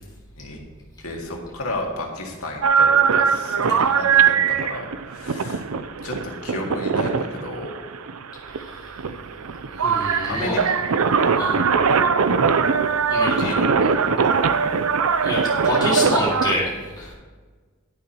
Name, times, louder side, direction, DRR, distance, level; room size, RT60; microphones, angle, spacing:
voice 1, 1.0-5.7 6.0-7.8 10.3-10.6 11.9-12.1 13.4-13.7, left 1 dB, 85° left, 0 dB, 2.1 m, -32 dB
sound 1, 2.6-16.5, right 6 dB, 80° right, 0.5 m, -21 dB
voice 2, 9.8-10.7 11.4-11.6 13.1-13.5 15.2-16.7 17.0-17.1, left 1 dB, 20° left, -5 dB, 2.2 m, -26 dB
11.0 x 10.0 x 3.0 m, 1.4 s
head